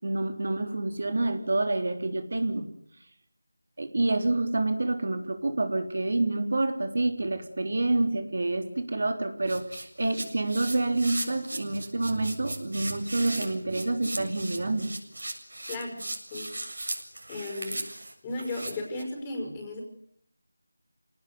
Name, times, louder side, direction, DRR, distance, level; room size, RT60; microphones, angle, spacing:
voice 1, 0.0-2.7 3.8-14.9, right 2 dB, 55° right, 7 dB, 3.6 m, -28 dB
sound 1, 9.5-19.0, right 2 dB, 75° right, 7.4 m, -37 dB
voice 2, 15.7-16.0 16.3-16.5 17.3-17.8 18.2-19.8, left 2 dB, 10° left, 2 dB, 5.5 m, -35 dB
28.5 x 19.0 x 9.6 m, 0.67 s
figure-of-eight pair, 175°, 0 cm